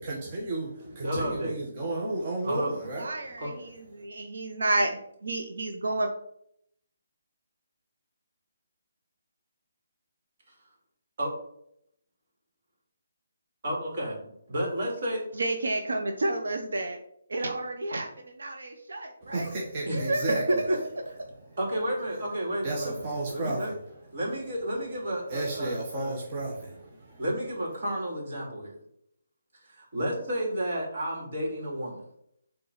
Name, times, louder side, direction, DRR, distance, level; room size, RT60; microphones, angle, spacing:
voice 1, 0.0-3.3 19.2-20.6 21.2-21.6 22.6-24.0 25.3-27.2, right 2 dB, 30° right, 1.3 m, -33 dB
voice 2, 0.9-1.5 2.4-2.7 3.4-3.5 11.2-11.3 13.6-14.2 14.5-15.2 19.8-20.0 20.7-20.8 21.1-21.2 21.6-23.7 24.1-26.2 27.2-28.8 29.7-32.0, equal, 45° right, 3.0 m, -31 dB
voice 3, 3.0-3.5 3.9-6.1 15.4-17.0 17.3-18.1 18.4-19.5 19.9-20.5, right 2 dB, 85° right, 0.9 m, -30 dB
7.2 x 3.8 x 4.9 m
hypercardioid pair, 170°, 0 cm